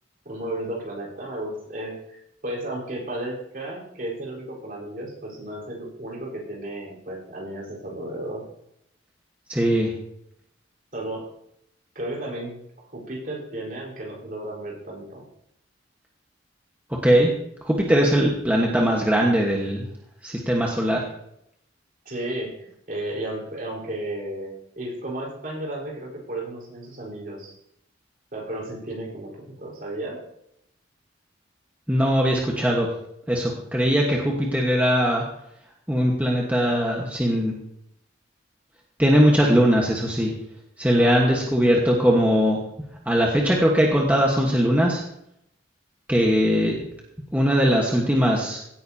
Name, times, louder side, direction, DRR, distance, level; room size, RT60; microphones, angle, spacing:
voice 1, 0.2-8.5 10.9-11.3 11.9-15.2 22.0-27.5 28.3-30.2 41.0-41.4, right 1 dB, 45° right, -3 dB, 4.4 m, -34 dB
voice 2, 9.5-9.9 16.9-17.3 17.6-19.9 20.2-21.0 31.9-32.9 33.3-35.2 35.9-37.6 39.0-40.3 40.8-42.6 43.0-45.0 46.1-46.8 47.3-48.6, equal, 10° right, -2 dB, 1.3 m, -20 dB
16.5 x 9.6 x 2.8 m, 0.75 s
head